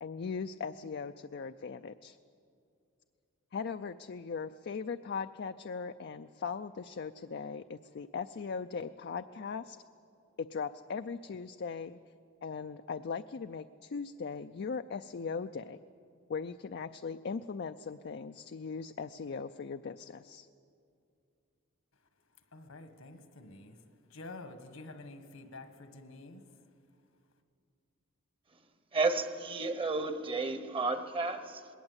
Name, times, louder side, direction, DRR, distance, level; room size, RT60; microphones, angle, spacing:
voice 1, 0.0-2.2 3.5-9.8 10.4-12.0 12.4-15.8 16.3-20.5, left 5 dB, 55° left, 0.4 m, -39 dB
voice 2, 22.5-23.8 24.1-26.4, left 2 dB, 80° left, 1.7 m, -48 dB
voice 3, 28.9-31.7, right 3 dB, 25° right, 1.0 m, -32 dB
20.5 x 17.5 x 8.1 m
head